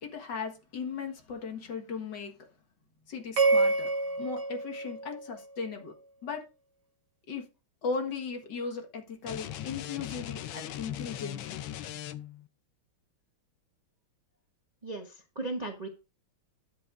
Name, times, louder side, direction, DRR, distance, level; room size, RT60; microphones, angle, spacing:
voice 1, 0.0-2.3 3.1-3.9 4.2-5.9 6.2-6.4 7.3-7.5 7.8-11.6, left 5 dB, 55° left, 2.1 m, -37 dB
sound 1, 3.4-5.7, right 3 dB, 60° right, 1.7 m, -28 dB
sound 2, 9.2-12.5, left 12 dB, 75° left, 1.4 m, -39 dB
voice 2, 14.8-15.9, right 2 dB, 25° right, 0.9 m, -36 dB
13.0 x 8.3 x 2.5 m
omnidirectional pair, 2.3 m